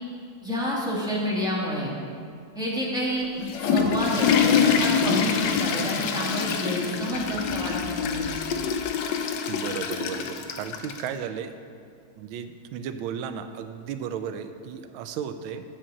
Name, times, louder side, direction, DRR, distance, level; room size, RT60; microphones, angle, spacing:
voice 1, 0.4-1.9 2.5-3.2 3.6-8.2, equal, ahead, -6 dB, 1.5 m, -29 dB
Water / Toilet flush, 3.2-11.1, left 6 dB, 75° left, 1.2 m, -25 dB
voice 2, 9.5-11.5 12.2-15.6, right 8 dB, 90° right, 9 dB, 1.4 m, -34 dB
8.7 x 4.5 x 7.4 m, 2.3 s
omnidirectional pair, 2.1 m